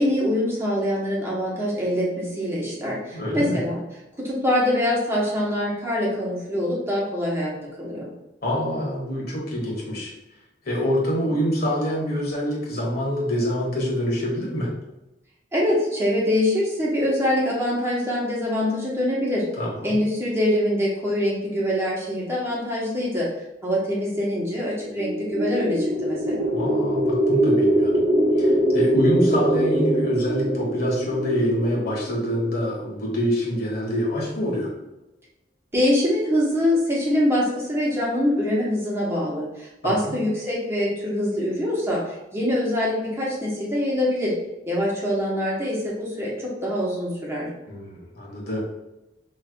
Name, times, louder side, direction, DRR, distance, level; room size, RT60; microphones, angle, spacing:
voice 1, 0.0-3.8 4.2-7.5 7.8-8.1 15.5-19.5 19.8-23.3 23.6-26.5 35.7-42.0 42.3-44.3 44.7-47.5, left 1 dB, 15° right, -5 dB, 1.1 m, -24 dB
voice 2, 3.1-3.6 8.4-10.1 10.6-14.7 19.6-20.0 26.5-28.0 28.4-34.7 39.8-40.2 47.7-48.6, equal, 60° left, -3 dB, 1.5 m, -25 dB
sound 1, 24.8-33.0, right 1 dB, 75° right, 0.7 m, -23 dB
5.4 x 3.2 x 2.3 m, 0.95 s
head